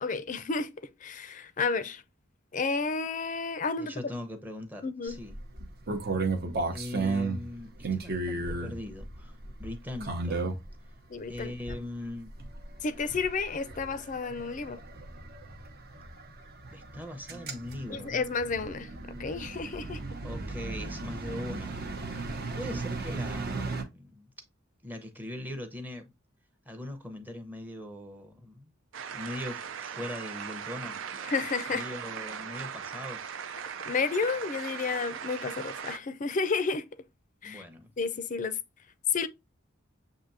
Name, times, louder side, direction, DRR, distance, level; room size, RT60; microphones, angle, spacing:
voice 1, 0.0-2.0 2.5-4.1 4.8-5.2 11.1-11.8 12.8-14.8 17.9-20.0 31.2-31.8 33.9-36.8 37.4-37.6 38.0-38.6 39.1-39.3, left 4 dB, 40° left, 0.5 m, -31 dB
voice 2, 3.8-5.4 6.7-10.5 11.3-12.3 16.7-18.1 20.2-21.8 22.5-24.3 24.8-26.1 26.7-28.6 29.1-31.0 31.7-33.3 37.4-37.9, left 1 dB, 10° right, 0.8 m, -40 dB
sound 1, 5.1-10.8 11.4-11.9 12.3-23.8, right 3 dB, 50° right, 0.9 m, -35 dB
sound 2, 28.9-36.0, right 7 dB, 65° right, 0.5 m, -39 dB
7.3 x 2.7 x 2.6 m
head